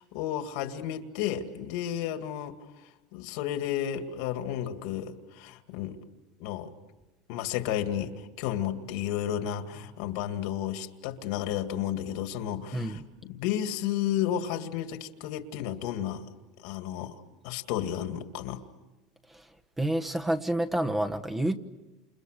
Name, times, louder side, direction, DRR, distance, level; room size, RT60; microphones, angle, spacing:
voice 1, 0.0-2.5 3.1-6.0 6.4-6.7 7.3-13.0 13.3-16.2 16.6-18.6, left 10 dB, 70° left, 7 dB, 2.3 m, -32 dB
voice 2, 19.8-21.5, right 1 dB, 10° right, 6 dB, 1.3 m, -28 dB
29.5 x 28.5 x 6.7 m, 1.1 s
supercardioid pair, 135°, 2 cm